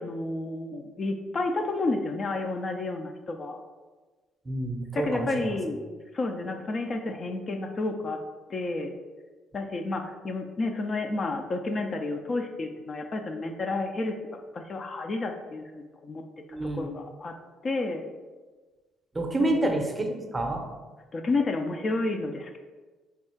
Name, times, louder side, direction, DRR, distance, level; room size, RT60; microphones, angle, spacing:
voice 1, 0.0-3.6 4.9-5.9 6.1-8.2 8.5-8.9 9.5-16.2 16.6-17.3 17.6-18.0 19.4-19.7 21.1-22.6, left 2 dB, 40° left, 4 dB, 0.4 m, -31 dB
voice 2, 4.4-5.6 16.5-16.9 19.1-20.7, right 1 dB, 20° right, 3 dB, 0.6 m, -28 dB
3.5 x 2.3 x 4.4 m, 1.3 s
supercardioid pair, 75°, 0 cm